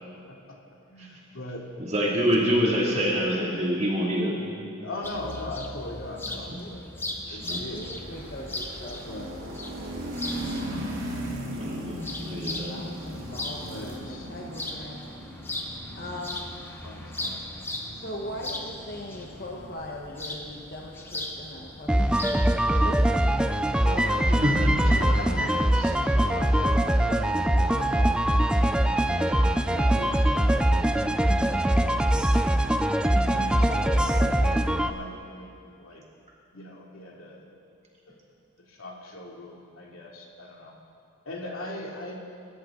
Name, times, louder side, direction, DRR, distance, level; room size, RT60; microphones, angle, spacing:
voice 1, 0.9-1.6 4.8-6.9 7.3-7.9 9.1-9.3 13.6-14.3 16.8-17.4 23.8-24.5 24.9-32.2 32.9-36.0 36.5-37.5 38.1-38.2 38.7-40.7 41.2-42.1, left 1 dB, 80° left, -1 dB, 2.6 m, -40 dB
voice 2, 1.8-4.6 6.5-6.7 7.3-7.6 11.5-12.0 12.2-12.8 24.4-24.7, equal, 30° right, -4 dB, 2.5 m, -26 dB
sound 1, 5.0-22.5, left 2 dB, 10° left, 0.9 m, -38 dB
sound 2, 7.2-20.3, right 1 dB, 75° right, 3.1 m, -39 dB
voice 3, 7.7-9.1 11.4-11.7 12.3-15.0 16.0-16.4 17.9-22.1 22.8-23.2, left 1 dB, 45° left, -1 dB, 1.3 m, -40 dB
sound 3, 21.9-34.9, right 1 dB, 5° right, 0.4 m, -22 dB
26.0 x 14.0 x 3.9 m, 2.5 s
head